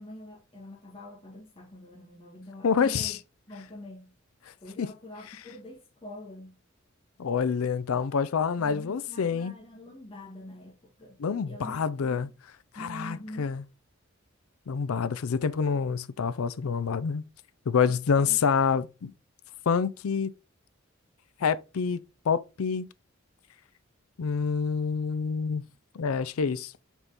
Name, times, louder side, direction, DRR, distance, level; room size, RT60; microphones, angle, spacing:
voice 1, 0.0-3.2 3.5-4.1 4.6-6.6 8.6-11.2 11.4-11.8 12.7-13.5 17.8-18.5, left 1 dB, 25° left, 1.6 m, -45 dB
voice 2, 2.6-3.2 4.8-4.9 7.2-9.5 11.2-12.3 12.8-13.6 14.7-17.2 17.7-19.1 19.7-20.3 21.4-22.0 22.3-22.9 24.2-25.6 25.9-26.7, left 6 dB, 80° left, 0.5 m, -27 dB
5.4 x 4.5 x 4.0 m
head